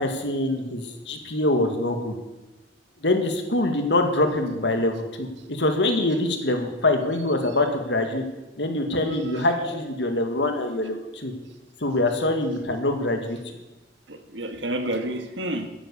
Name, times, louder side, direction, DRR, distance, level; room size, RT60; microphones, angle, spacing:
voice 1, 0.0-2.1 3.0-8.2 8.6-11.3 11.8-13.4, left 2 dB, 70° left, 5 dB, 2.2 m, -24 dB
voice 2, 9.3-9.7 14.1-15.7, right 1 dB, 85° right, 7 dB, 1.7 m, -30 dB
13.5 x 10.0 x 7.2 m, 1.1 s
head